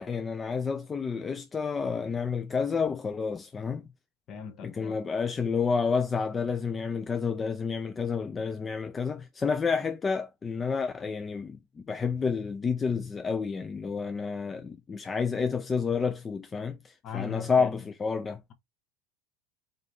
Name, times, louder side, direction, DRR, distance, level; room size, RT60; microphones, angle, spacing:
voice 1, 0.0-3.8 4.6-18.4, left 5 dB, 20° left, 0.3 m, -30 dB
voice 2, 4.3-4.9 17.0-17.7, left 8 dB, 40° left, 0.8 m, -38 dB
3.8 x 2.7 x 3.2 m
supercardioid pair, 120°, 0 cm